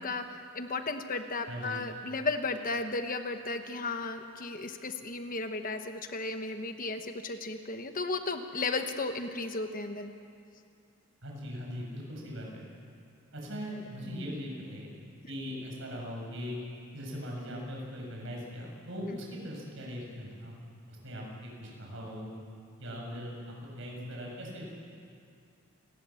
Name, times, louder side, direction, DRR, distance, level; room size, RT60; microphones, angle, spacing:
voice 1, 0.0-10.1 19.1-19.2, left 3 dB, 40° left, 7 dB, 1.2 m, -34 dB
voice 2, 1.5-1.8 11.2-12.6 13.3-14.9 15.3-16.6 16.9-20.6 20.9-22.3 22.8-24.7, equal, 60° right, -1 dB, 7.1 m, -40 dB
29.0 x 19.5 x 7.2 m, 2.4 s
head